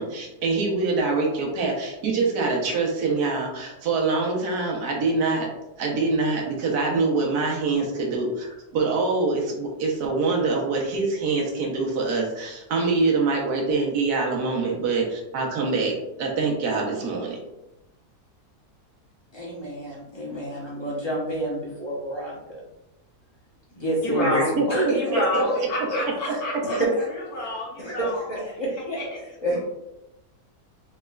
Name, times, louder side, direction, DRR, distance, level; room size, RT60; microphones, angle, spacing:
voice 1, 0.0-5.5 5.8-17.4 24.6-24.7 25.3-25.4, right 3 dB, 85° right, -1 dB, 1.4 m, -25 dB
voice 2, 19.3-22.6 23.8-25.5 25.8-27.1 27.8-29.0 29.4-29.6, right 1 dB, 20° left, -5 dB, 0.8 m, -28 dB
voice 3, 24.0-24.6 24.9-26.8 27.3-28.3 29.0-29.2 29.5-29.6, left 1 dB, 70° left, -4 dB, 1.7 m, -29 dB
4.1 x 3.2 x 2.3 m, 0.92 s
omnidirectional pair, 1.7 m